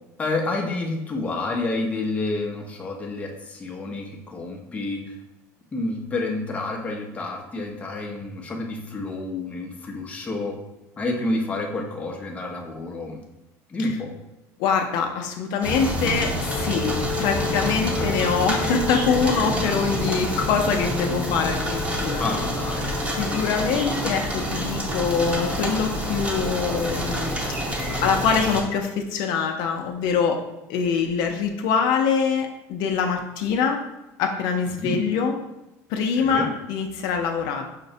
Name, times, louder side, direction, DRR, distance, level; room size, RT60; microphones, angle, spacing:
voice 1, 0.2-5.2 5.7-10.6 11.0-13.2 13.7-14.1 17.9-18.1 22.2-23.0 34.8-35.0 36.2-36.5, left 2 dB, 20° left, 1 dB, 0.6 m, -29 dB
voice 2, 14.6-16.9 17.2-22.2 23.1-27.4 28.0-30.4 30.7-33.8 34.2-35.3 35.9-37.6, left 6 dB, 70° left, 3 dB, 0.4 m, -24 dB
sound 1, 15.6-28.6, equal, 15° right, 0.8 m, -27 dB
Wind instrument woodwind instrument, 16.5-23.8, left 8 dB, 90° left, 0.8 m, -35 dB
5.7 x 2.0 x 2.6 m, 0.94 s
cardioid pair, 130°, 7 cm